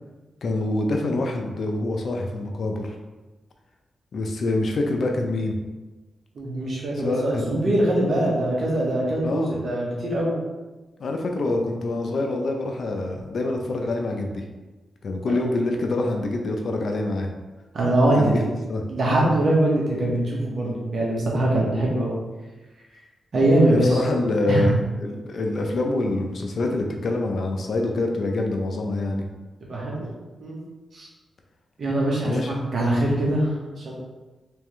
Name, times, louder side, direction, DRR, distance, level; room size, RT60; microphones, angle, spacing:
voice 1, 0.4-3.0 4.1-5.6 7.0-7.5 9.2-9.6 11.0-14.4 15.0-17.3 18.2-18.4 18.7-18.8 23.7-29.3 32.2-32.5, left 2 dB, 65° left, 3 dB, 0.6 m, -26 dB
voice 2, 6.3-10.4 15.3-15.4 17.7-18.3 18.9-22.2 23.3-24.0 24.5-24.7 29.7-30.1 30.4-30.6 30.9-31.1 31.8-33.9, right 1 dB, 65° right, -3 dB, 1.3 m, -22 dB
3.5 x 3.4 x 3.2 m, 1.2 s
cardioid pair, 70°, 0 cm